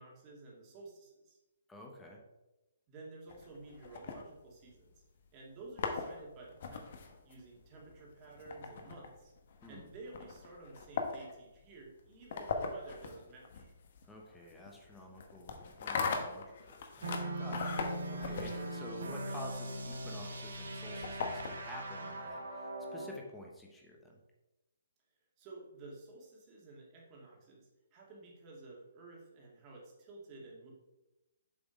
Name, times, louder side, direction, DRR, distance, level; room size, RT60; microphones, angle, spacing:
voice 1, 0.0-1.4 2.9-5.0 5.3-9.3 9.7-13.7 25.4-30.7, right 2 dB, 25° right, -2 dB, 1.9 m, -52 dB
voice 2, 1.7-2.2 9.6-9.9 14.1-24.1, left 1 dB, 5° left, 0 dB, 0.9 m, -50 dB
sound 1, 3.3-4.9 5.5-21.9, left 4 dB, 50° left, 1.0 m, -41 dB
sound 2, 17.0-23.2, right 1 dB, 85° right, 1.3 m, -40 dB
7.3 x 3.5 x 4.9 m, 0.99 s
hypercardioid pair, 155°, 0 cm